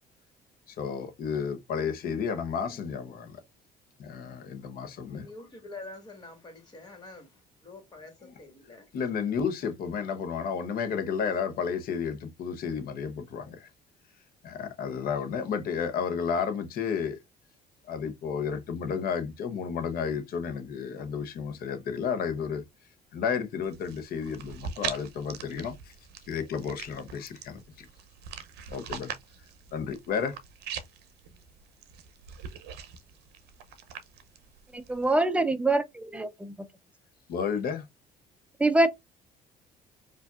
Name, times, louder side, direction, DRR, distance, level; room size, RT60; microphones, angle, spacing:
voice 1, 0.7-3.3 4.0-5.3 8.2-8.3 8.9-13.7 14.4-17.2 17.8-22.6 23.1-25.9 26.3-27.9 28.7-29.1 29.7-30.4 37.3-37.9, left 6 dB, 60° left, 0.9 m, -32 dB
voice 2, 5.1-8.9, left 2 dB, 25° left, 1.6 m, -46 dB
sound 1, 23.6-35.1, right 8 dB, 75° right, 0.6 m, -42 dB
voice 3, 34.7-36.7 38.6-38.9, right 2 dB, 5° right, 0.5 m, -25 dB
4.7 x 2.5 x 2.4 m
cardioid pair, 110°, 17 cm